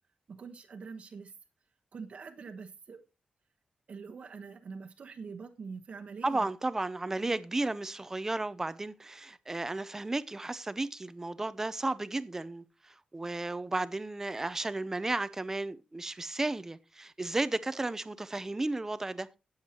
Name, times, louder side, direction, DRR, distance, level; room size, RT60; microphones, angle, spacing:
voice 1, 0.3-1.3 1.9-3.0 3.9-6.5 7.2-7.3, right 5 dB, 50° right, 1.1 m, -44 dB
voice 2, 6.2-19.3, right 2 dB, 15° right, 0.6 m, -34 dB
18.0 x 7.3 x 2.9 m
wide cardioid pair, 155°, 3 cm